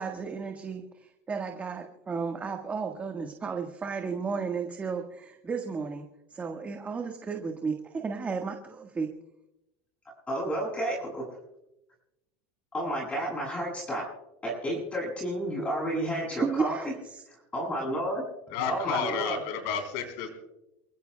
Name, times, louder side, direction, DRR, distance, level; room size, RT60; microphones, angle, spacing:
voice 1, 0.0-6.0 6.3-9.1 16.4-17.2, right 5 dB, 20° right, 2 dB, 1.6 m, -33 dB
voice 2, 10.3-11.2 12.7-14.0 14.4-16.9 17.3-18.2 18.7-19.4, right 1 dB, 20° left, -4 dB, 7.6 m, -31 dB
voice 3, 18.5-20.3, left 6 dB, 70° left, 4 dB, 3.7 m, -31 dB
29.0 x 16.0 x 2.3 m, 0.91 s
supercardioid pair, 120°, 7 cm